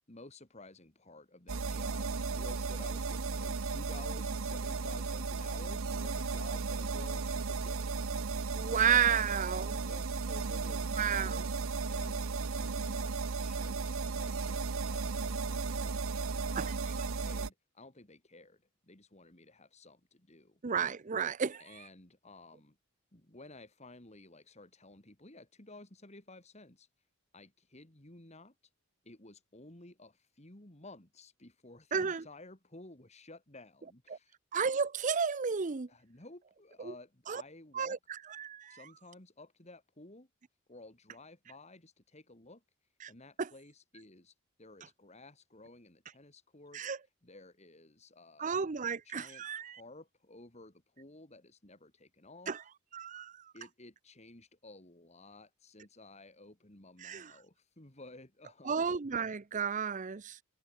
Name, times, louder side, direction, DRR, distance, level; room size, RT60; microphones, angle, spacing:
voice 1, 0.1-8.1 9.8-11.5 11.9-12.3 12.6-20.6 21.6-22.8 23.1-26.9 27.3-28.5 29.0-34.3 35.9-38.0 38.7-40.3 40.7-42.6 43.1-46.8 47.2-52.5 53.5-58.8, left 2 dB, 30° left, 2.3 m, -54 dB
sound 1, 1.5-17.5, right 4 dB, 65° right, 0.8 m, -35 dB
voice 2, 8.5-9.8 11.0-11.4 16.6-17.1 20.6-21.9 31.9-32.2 34.1-34.2 34.5-35.9 36.8-36.9 37.3-37.4 37.7-38.8 43.0-43.1 43.4-43.5 46.7-47.0 48.4-49.8 52.5-52.6 52.9-53.5 57.0-57.3 58.6-60.4, right 7 dB, 35° right, 0.5 m, -32 dB
head